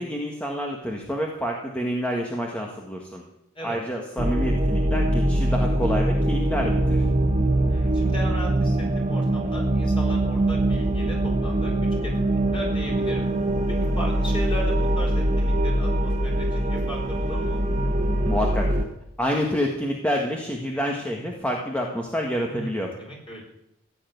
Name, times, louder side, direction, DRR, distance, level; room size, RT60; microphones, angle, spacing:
voice 1, 0.0-3.2 3.6-7.0 18.2-18.6 19.2-22.9, equal, 5° left, -1 dB, 1.8 m, -28 dB
sound 1, 4.2-18.8, right 1 dB, 35° right, 1.9 m, -23 dB
voice 2, 7.7-11.7 12.0-13.2 13.7-17.6 22.5-23.4, equal, 25° left, 0 dB, 4.6 m, -36 dB
16.0 x 7.8 x 9.4 m, 0.81 s
head